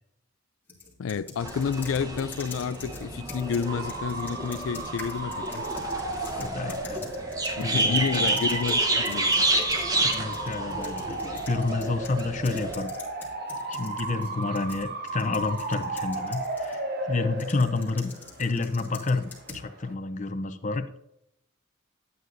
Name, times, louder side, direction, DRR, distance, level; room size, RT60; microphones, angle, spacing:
sound 1, 0.7-9.9 10.1-16.8 17.4-19.7, left 4 dB, 10° left, 2.2 m, -45 dB
voice 1, 1.0-5.6 6.2-6.4 7.6-8.8 9.1-9.3, left 6 dB, 80° left, 0.4 m, -30 dB
sound 2, 1.4-12.7, right 2 dB, 20° right, 0.9 m, -30 dB
Bark / Motor vehicle (road) / Siren, 3.7-19.9, right 2 dB, 50° right, 1.1 m, -35 dB
voice 2, 6.4-7.1 7.6-8.4 9.9-12.9 13.7-16.8 17.1-18.1 18.4-21.0, left 3 dB, 35° left, 0.6 m, -29 dB
11.5 x 9.3 x 2.6 m
head